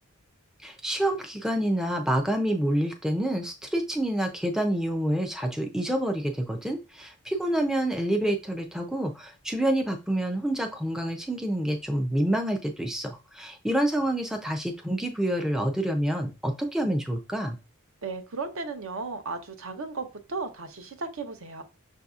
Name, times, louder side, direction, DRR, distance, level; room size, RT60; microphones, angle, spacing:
voice 1, 0.6-17.6, right 1 dB, ahead, 0.3 m, -27 dB
voice 2, 18.0-21.6, right 4 dB, 70° right, 0.7 m, -35 dB
6.0 x 2.7 x 2.4 m
head